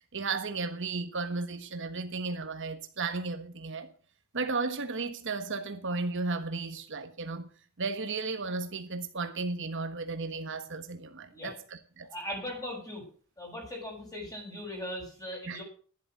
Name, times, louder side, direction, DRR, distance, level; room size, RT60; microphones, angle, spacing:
voice 1, 0.1-3.9 4.3-7.5 7.8-11.5 12.0-12.1 15.5-15.6, right 3 dB, 60° right, 1.3 m, -34 dB
voice 2, 12.1-13.0 13.4-15.6, left 1 dB, 15° left, 6.3 m, -39 dB
11.5 x 11.0 x 6.5 m
head